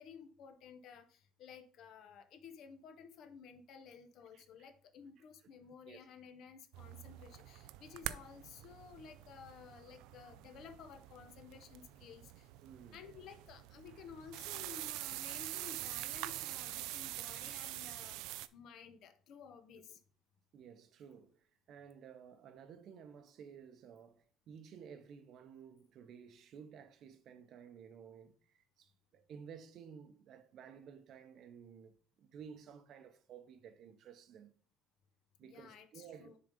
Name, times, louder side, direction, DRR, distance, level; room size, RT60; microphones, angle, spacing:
voice 1, 0.0-12.5 12.9-20.0 35.4-36.4, left 6 dB, 50° left, 0.8 m, -54 dB
voice 2, 4.3-4.7 5.8-6.1 12.6-13.0 20.5-34.5 35.4-36.4, right 7 dB, 45° right, 0.7 m, -54 dB
sound 1, 6.7-18.5, right 16 dB, 85° right, 0.4 m, -45 dB
6.9 x 3.8 x 5.1 m
cardioid pair, 165°, 0 cm